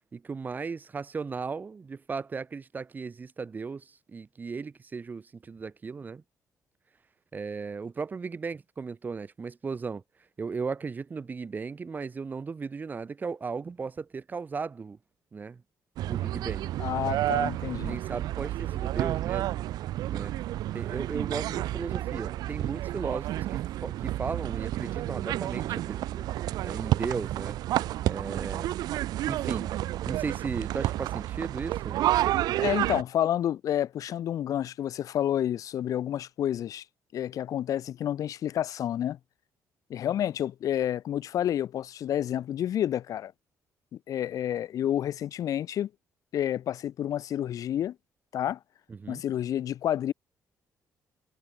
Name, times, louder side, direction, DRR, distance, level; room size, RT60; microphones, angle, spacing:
voice 1, 0.1-6.2 7.3-10.0 10.4-15.0 15.3-15.6 16.1-16.7 17.2-17.4 17.9-19.6 20.1-20.4 20.7-27.6 28.1-28.7 29.3-29.7 30.0-32.0 48.9-49.2, right 5 dB, 25° right, 7.7 m, -36 dB
sound 1, 16.0-33.0, right 14 dB, 85° right, 7.3 m, -30 dB
voice 2, 16.8-18.0 32.6-36.8 37.1-39.2 39.9-43.3 44.1-45.9 46.3-47.9 48.3-48.6 49.1-50.1, left 11 dB, 60° left, 2.5 m, -29 dB
cardioid pair, 140°, 7 cm